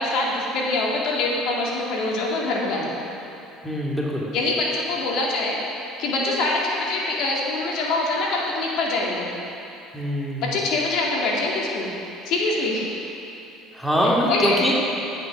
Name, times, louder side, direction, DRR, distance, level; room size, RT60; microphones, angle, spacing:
voice 1, 0.0-2.9 4.3-5.6 6.0-9.3 10.4-11.9 12.3-12.9 14.0-14.7, left 2 dB, 65° left, -3 dB, 2.3 m, -24 dB
voice 2, 3.6-4.3 9.9-10.5 13.7-14.7, equal, ahead, -5 dB, 2.1 m, -23 dB
11.5 x 8.4 x 5.9 m, 2.8 s
supercardioid pair, 110°, 0 cm